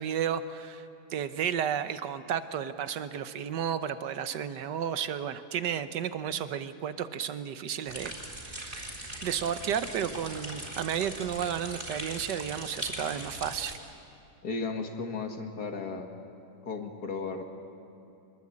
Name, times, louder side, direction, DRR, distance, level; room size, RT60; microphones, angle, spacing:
voice 1, 0.0-8.1 8.4-13.8, right 8 dB, 70° right, 12 dB, 1.5 m, -33 dB
sound 1, 7.9-13.7, right 1 dB, 20° right, 4.2 m, -40 dB
voice 2, 14.4-16.1 16.6-17.4, left 4 dB, 55° left, 5 dB, 2.4 m, -35 dB
24.0 x 21.5 x 8.8 m, 2.9 s
omnidirectional pair, 2.0 m